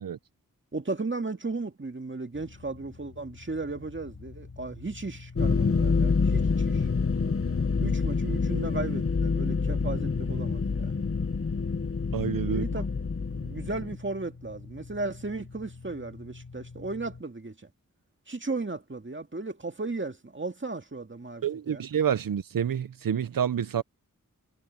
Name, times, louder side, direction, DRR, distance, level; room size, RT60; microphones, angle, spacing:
voice 1, 0.7-6.9 7.8-10.9 12.4-12.9 13.3-17.5 18.3-21.8, right 3 dB, 35° right, 1.9 m, -35 dB
sound 1, 2.3-17.2, left 4 dB, 80° left, 4.2 m, -46 dB
sound 2, 5.4-13.9, left 4 dB, 45° left, 0.9 m, -27 dB
voice 2, 12.1-12.6 21.4-23.8, right 8 dB, 90° right, 0.7 m, -28 dB
wide cardioid pair, 45°, 33 cm